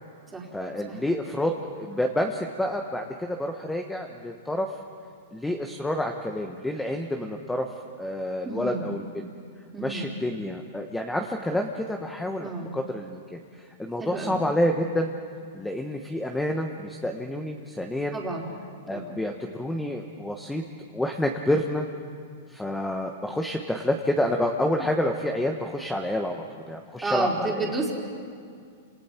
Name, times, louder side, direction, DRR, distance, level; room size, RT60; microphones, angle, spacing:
voice 1, 0.5-4.7 5.3-7.7 8.0-9.3 9.8-15.1 15.5-18.2 18.9-20.6 20.9-21.9 22.5-27.7, left 1 dB, 5° left, 4 dB, 1.2 m, -28 dB
voice 2, 8.4-9.0 9.7-10.1 12.4-12.7 14.0-14.4 18.1-18.5 18.9-19.2 27.0-27.9, right 2 dB, 10° right, -2 dB, 3.6 m, -31 dB
29.0 x 27.0 x 4.5 m, 2.2 s
hypercardioid pair, 135°, 0 cm